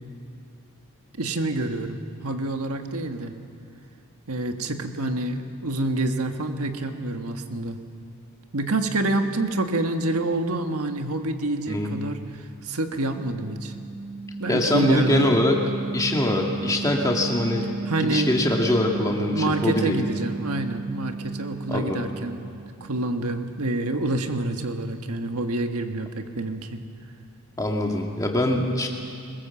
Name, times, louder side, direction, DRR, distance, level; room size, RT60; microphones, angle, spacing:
voice 1, 1.2-3.3 4.3-7.8 8.5-13.7 14.4-15.3 17.8-18.3 19.3-26.8, right 2 dB, 80° right, 6 dB, 1.5 m, -27 dB
sound 1, 12.7-22.8, right 3 dB, 45° right, 5.3 m, -34 dB
voice 2, 14.5-15.6 15.9-17.7 18.0-20.0 21.7-22.0 27.6-28.9, left 1 dB, 15° left, 1 dB, 2.0 m, -23 dB
22.0 x 21.0 x 7.2 m, 2.4 s
head